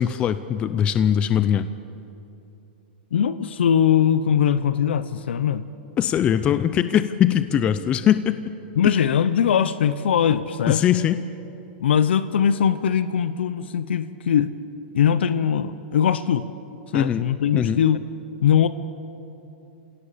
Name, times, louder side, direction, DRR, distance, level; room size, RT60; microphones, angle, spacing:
voice 1, 0.0-1.7 6.0-8.5 8.8-8.9 10.7-11.2 16.9-17.3 17.5-17.8, left 9 dB, 20° left, 12 dB, 0.5 m, -21 dB
voice 2, 3.1-5.6 8.8-10.8 11.8-14.5 14.9-16.5 16.9-18.0 18.4-18.7, left 8 dB, 90° left, 13 dB, 0.8 m, -21 dB
29.0 x 17.0 x 6.9 m, 2.9 s
supercardioid pair, 165°, 6 cm